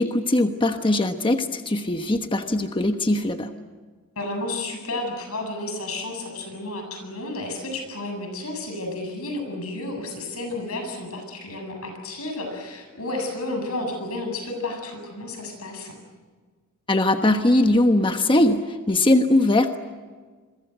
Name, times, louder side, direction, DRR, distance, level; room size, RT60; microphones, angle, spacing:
voice 1, 0.0-3.5 16.9-19.8, left 1 dB, 25° left, 6 dB, 1.2 m, -20 dB
voice 2, 4.2-16.0, left 2 dB, 85° left, 4 dB, 7.8 m, -32 dB
27.5 x 23.0 x 8.0 m, 1.4 s
head